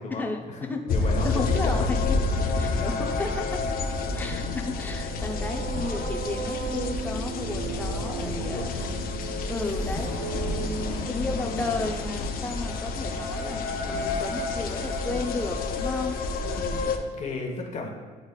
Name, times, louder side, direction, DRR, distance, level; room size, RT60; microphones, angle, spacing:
voice 1, 0.0-1.9 3.2-3.3 4.3-4.7 7.5-9.1 9.9-10.0 10.5-10.6 16.9-17.9, left 3 dB, 45° left, 1 dB, 1.3 m, -36 dB
sound 1, 0.9-17.0, left 3 dB, 60° left, 0.6 m, -29 dB
voice 2, 1.2-2.2 2.6-3.8 4.1-8.9 9.5-10.2 10.5-17.0, left 3 dB, 10° left, 1 dB, 0.7 m, -33 dB
sound 2, 4.8-12.6, right 4 dB, 85° right, 1.2 m, -37 dB
10.5 x 3.9 x 2.4 m, 1.5 s
cardioid pair, 110°, 17 cm